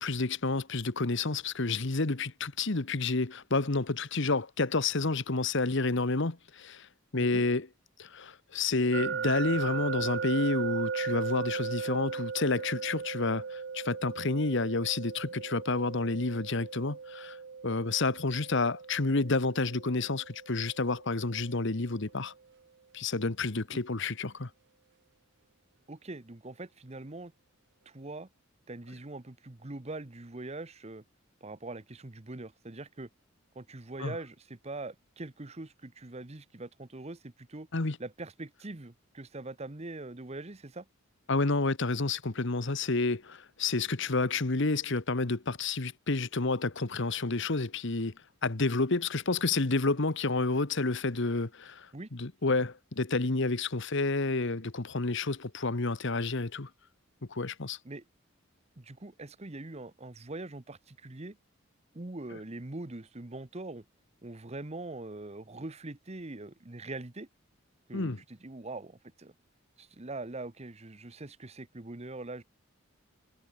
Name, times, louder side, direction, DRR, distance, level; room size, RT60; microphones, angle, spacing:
voice 1, 0.0-6.9 7.1-7.7 8.0-17.4 17.6-22.3 22.9-24.5 34.0-34.1 37.7-38.0 41.3-48.1 48.4-56.7 57.3-57.8 67.9-68.2, left 3 dB, 60° left, 1.3 m, -30 dB
sound 1, 8.9-21.8, right 6 dB, 55° right, 0.5 m, -37 dB
voice 2, 25.9-27.3 27.8-28.3 28.7-31.0 31.4-33.1 33.5-37.7 38.0-40.9 51.9-52.1 52.6-52.7 57.8-58.0 58.8-61.4 61.9-63.8 64.2-67.3 67.9-69.3 69.8-72.4, right 2 dB, 30° right, 1.0 m, -42 dB
head